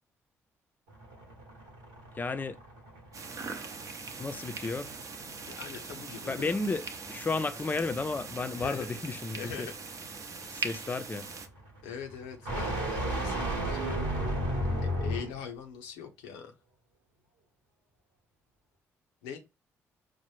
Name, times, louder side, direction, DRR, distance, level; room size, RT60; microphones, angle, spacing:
sound 1, 0.9-15.5, right 1 dB, 85° right, 1.0 m, -36 dB
voice 1, 2.2-2.6 4.2-4.9 6.3-9.7 10.5-11.3, left 3 dB, 25° left, 0.5 m, -33 dB
sound 2, 3.1-11.5, right 4 dB, 50° right, 0.7 m, -41 dB
voice 2, 5.5-6.6 8.6-8.9 9.3-9.7 10.4-10.6 11.8-14.0 14.8-16.5 19.2-19.4, left 7 dB, 85° left, 0.5 m, -42 dB
4.7 x 2.1 x 3.1 m
hypercardioid pair, 45°, 7 cm